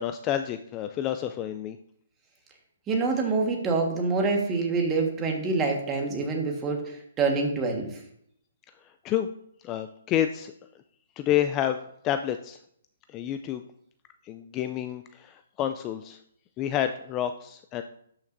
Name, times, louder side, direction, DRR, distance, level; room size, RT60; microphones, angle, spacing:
voice 1, 0.0-1.8 9.0-9.3 9.6-10.5 11.2-12.6 13.1-13.6 14.2-16.2 16.6-17.8, left 11 dB, 20° left, 9 dB, 0.3 m, -29 dB
voice 2, 2.9-8.0, right 4 dB, 15° right, 1 dB, 1.5 m, -26 dB
12.5 x 5.8 x 2.6 m, 0.69 s
hypercardioid pair, 155°, 0 cm